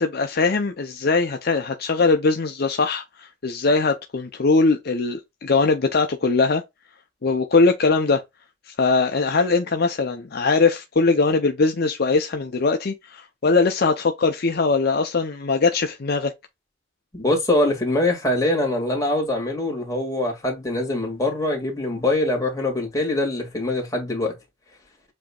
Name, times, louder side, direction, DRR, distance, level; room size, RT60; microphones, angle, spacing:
voice 1, 0.0-6.6 7.2-8.2 8.7-16.3, left 4 dB, 50° left, 0.6 m, -21 dB
voice 2, 17.1-24.3, left 1 dB, 15° left, 2.0 m, -23 dB
7.5 x 2.9 x 2.3 m
head